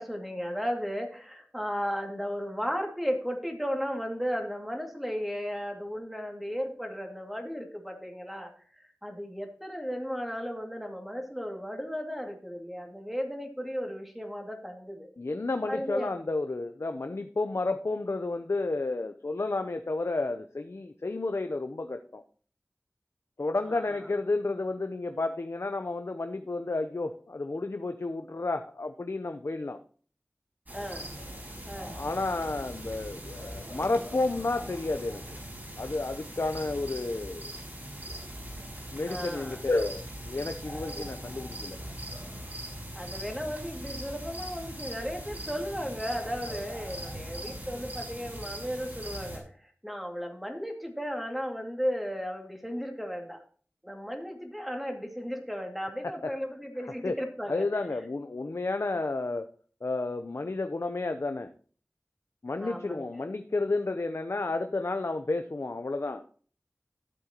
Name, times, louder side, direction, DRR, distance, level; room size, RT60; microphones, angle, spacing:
voice 1, 0.0-15.1 15.7-16.1 23.7-24.1 30.7-31.1 31.6-32.1 39.1-39.8 40.9-41.1 42.9-53.4 53.8-57.7 62.6-63.2, equal, 5° right, 2 dB, 2.4 m, -35 dB
voice 2, 15.2-22.2 23.4-29.8 32.0-35.2 35.8-37.5 38.9-41.8 56.0-56.3 57.0-57.2 57.5-59.5 59.8-61.5 62.4-66.2, left 2 dB, 70° left, 7 dB, 0.7 m, -31 dB
sound 1, 30.7-49.4, right 1 dB, 40° right, 5.3 m, -41 dB
13.5 x 7.8 x 3.0 m, 0.43 s
wide cardioid pair, 55°, 5 cm